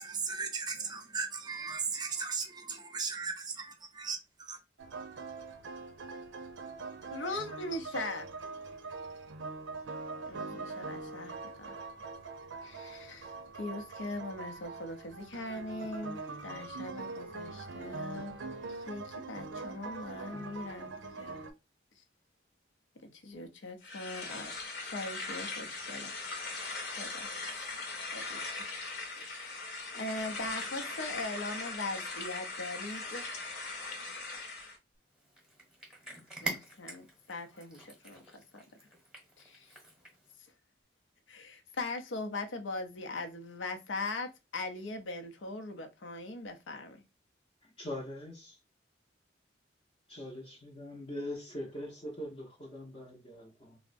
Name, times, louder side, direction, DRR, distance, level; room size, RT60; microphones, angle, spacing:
voice 1, 0.0-4.6, right 5 dB, 20° right, 0.5 m, -37 dB
sound 1, 4.8-21.5, right 3 dB, 90° right, 0.5 m, -43 dB
voice 2, 7.1-8.3 10.3-11.8 12.6-18.4 18.7-21.5 22.0-22.1 23.0-26.2 26.9-27.3 28.1-28.7 29.0-29.6 29.9-33.3 36.4-38.6 39.4-39.8 41.3-47.0, left 2 dB, 90° left, 0.6 m, -40 dB
sound 2, 23.8-34.8, left 3 dB, 60° left, 0.8 m, -40 dB
Cat, 35.1-40.3, right 3 dB, 5° right, 0.9 m, -45 dB
voice 3, 47.8-48.6 50.1-53.8, left 1 dB, 25° left, 0.6 m, -42 dB
3.4 x 2.0 x 2.5 m
head